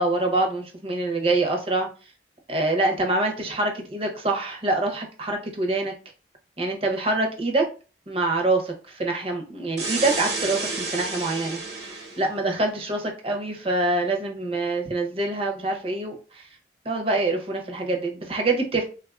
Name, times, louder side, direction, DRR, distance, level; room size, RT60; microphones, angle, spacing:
voice 1, 0.0-1.9 2.5-5.9 6.6-7.7 8.1-16.5 16.8-18.8, right 2 dB, 35° right, 2 dB, 0.6 m, -25 dB
sound 1, 9.8-12.2, right 3 dB, 65° right, 1.0 m, -30 dB
3.4 x 2.3 x 2.3 m, 0.34 s
head